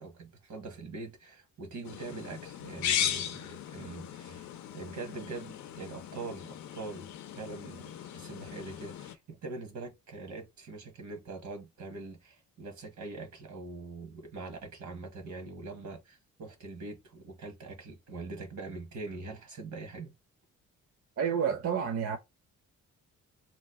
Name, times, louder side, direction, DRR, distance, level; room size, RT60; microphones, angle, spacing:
voice 1, 0.0-7.1 7.3-20.1, right 3 dB, 75° right, 1.3 m, -43 dB
sound 1, 1.8-9.2, left 9 dB, 65° left, 0.5 m, -37 dB
voice 2, 21.2-22.2, right 7 dB, 50° right, 0.7 m, -29 dB
3.0 x 2.2 x 3.5 m
cardioid pair, 90°, 30 cm